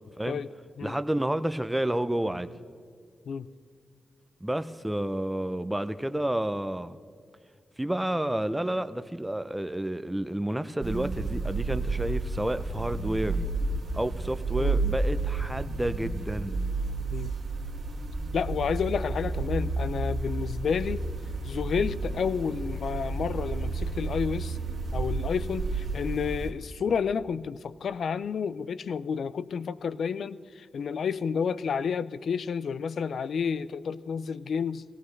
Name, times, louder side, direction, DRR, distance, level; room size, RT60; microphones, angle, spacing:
voice 1, 0.8-2.5 4.4-7.0 7.8-13.4 13.9-16.6, right 1 dB, 10° right, 11 dB, 0.5 m, -30 dB
sound 1, 10.8-26.5, right 3 dB, 65° right, 1.9 m, -31 dB
voice 2, 18.3-21.0 21.4-24.6 24.9-34.8, left 6 dB, 75° left, 16 dB, 0.4 m, -30 dB
18.0 x 15.0 x 3.2 m, 2.2 s
cardioid pair, 70°, 0 cm